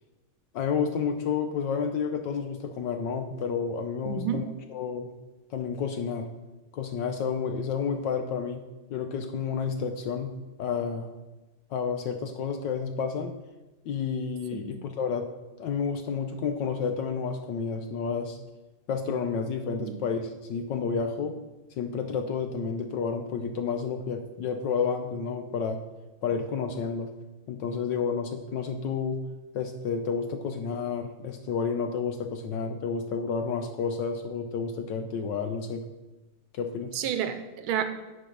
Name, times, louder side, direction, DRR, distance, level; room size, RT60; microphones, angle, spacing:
voice 1, 0.5-4.4 4.7-5.1 5.5-6.3 6.7-8.6 8.9-11.1 11.7-13.3 13.8-15.3 15.6-18.4 18.9-21.4 21.8-25.8 26.2-27.1 27.5-29.2 29.5-35.8 36.5-37.0, left 6 dB, 70° left, 6 dB, 1.1 m, -30 dB
voice 2, 4.0-4.4 14.5-14.7 19.8-20.0 36.9-37.8, right 9 dB, 75° right, 9 dB, 1.5 m, -30 dB
10.0 x 5.2 x 5.9 m, 1.1 s
omnidirectional pair, 2.4 m